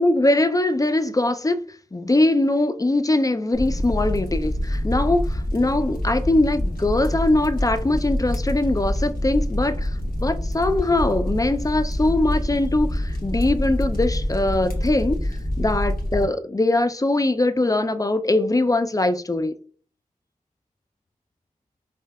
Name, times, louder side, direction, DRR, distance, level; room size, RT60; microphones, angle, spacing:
voice 1, 0.0-1.6 1.9-19.5, left 2 dB, 25° left, 0.3 m, -22 dB
sound 1, 3.5-16.2, left 1 dB, 85° left, 0.9 m, -26 dB
5.0 x 2.2 x 2.2 m
wide cardioid pair, 50°, 15 cm